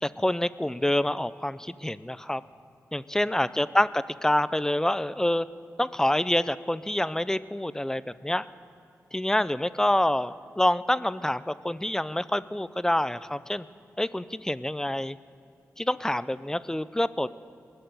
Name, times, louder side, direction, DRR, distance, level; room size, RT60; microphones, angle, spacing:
voice 1, 0.0-2.4 2.9-5.5 5.8-8.5 9.1-13.7 14.0-15.2 15.8-17.3, left 1 dB, 10° left, 16 dB, 0.5 m, -27 dB
20.0 x 6.8 x 9.4 m, 2.4 s
cardioid pair, 60°, 6 cm